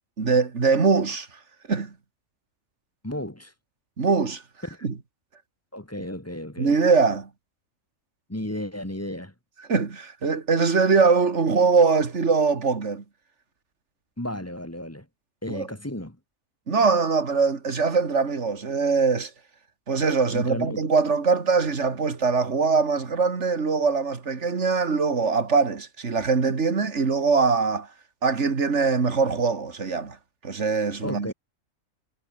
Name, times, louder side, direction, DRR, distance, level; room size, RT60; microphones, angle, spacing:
voice 1, 0.2-1.3 1.7-1.9 4.0-4.4 4.8-4.9 6.6-7.3 9.7-13.0 15.5-15.7 16.7-19.3 19.9-27.9 28.2-30.2 30.4-31.3, right 4 dB, 55° right, 2.4 m, -22 dB
voice 2, 3.0-3.5 5.7-6.8 8.3-9.3 14.2-15.1 15.4-16.2 20.3-20.9 31.0-31.3, left 1 dB, 10° left, 2.2 m, -33 dB
omnidirectional pair, 1.4 m